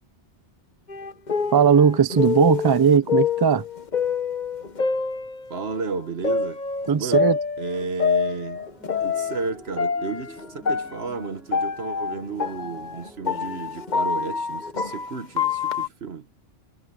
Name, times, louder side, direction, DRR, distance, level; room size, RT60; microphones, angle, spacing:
sound 1, 0.9-5.7 6.2-9.5 9.8-15.9, left 6 dB, 50° left, 1.2 m, -26 dB
voice 1, 1.5-3.6 6.9-7.4, right 7 dB, 40° right, 0.3 m, -18 dB
voice 2, 5.5-6.6 7.0-8.7 9.0-16.3, right 4 dB, 80° right, 1.6 m, -32 dB
sound 2, 8.5-14.7, equal, ahead, 2.9 m, -46 dB
omnidirectional pair, 1.0 m